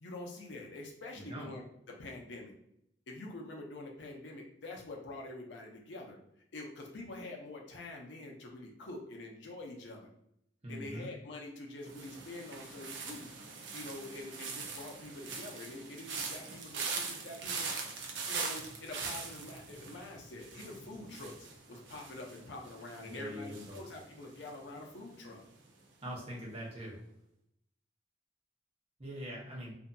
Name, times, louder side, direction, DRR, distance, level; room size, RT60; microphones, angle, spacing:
voice 1, 0.0-2.5 3.1-6.2 6.5-10.1 10.7-13.3 13.7-17.7 18.3-25.4, left 2 dB, 75° left, 0 dB, 0.6 m, -46 dB
voice 2, 1.1-1.5 10.6-11.1 23.1-23.8 26.0-27.0 29.0-29.7, equal, 35° right, -4 dB, 0.8 m, -43 dB
sound 1, 11.9-24.9 25.2-25.6, right 4 dB, 80° right, 0.5 m, -42 dB
2.6 x 2.6 x 2.2 m, 0.77 s
head